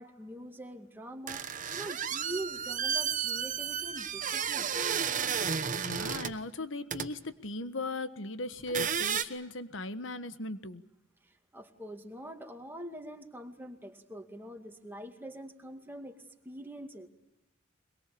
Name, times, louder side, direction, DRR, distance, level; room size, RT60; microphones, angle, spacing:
voice 1, 0.0-4.8 11.2-16.2 16.4-17.1, right 1 dB, 10° right, 3 dB, 2.3 m, -44 dB
sound 1, 1.3-6.4 6.9-7.1 8.6-9.2, right 7 dB, 40° right, 1.1 m, -32 dB
voice 2, 5.8-10.8, left 2 dB, 65° left, 12 dB, 1.4 m, -38 dB
23.0 x 22.5 x 8.5 m, 0.87 s
head